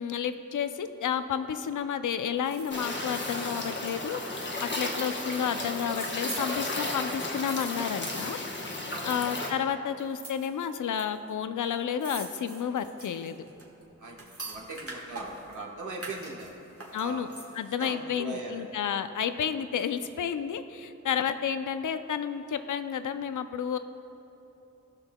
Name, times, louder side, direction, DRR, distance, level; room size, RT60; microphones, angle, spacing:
voice 1, 0.0-8.4 9.0-13.4 16.9-17.3 17.5-23.8, left 8 dB, 80° left, 10 dB, 0.4 m, -31 dB
sound 1, 2.5-8.6 8.9-9.5 10.0-11.0 11.3-11.4 11.6-15.6 16.0-17.7 18.1-18.2, right 2 dB, 50° right, 1.5 m, -44 dB
sound 2, 2.7-9.5, left 2 dB, 40° left, 1.0 m, -34 dB
voice 2, 14.4-16.5 17.0-17.2 17.8-18.8, right 2 dB, 80° right, -2 dB, 1.2 m, -40 dB
18.0 x 6.2 x 2.2 m, 2.9 s
wide cardioid pair, 75°, 30 cm